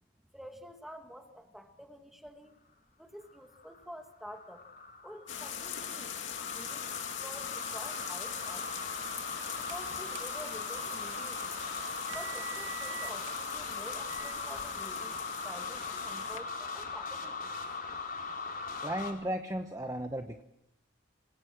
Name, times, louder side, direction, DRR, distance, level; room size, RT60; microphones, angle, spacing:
voice 1, 0.3-2.5 3.0-4.6 5.0-6.1 6.5-8.9 9.5-11.6 12.1-17.5, equal, ahead, 4 dB, 2.1 m, -49 dB
sound 1, 3.2-19.1, left 4 dB, 45° left, 4.7 m, -40 dB
sound 2, 5.3-16.4, left 8 dB, 75° left, 2.4 m, -41 dB
sound 3, 7.6-14.7, right 8 dB, 70° right, 2.2 m, -48 dB
voice 2, 18.8-20.4, right 1 dB, 15° right, 5 dB, 1.0 m, -35 dB
27.5 x 18.0 x 6.1 m, 0.81 s
head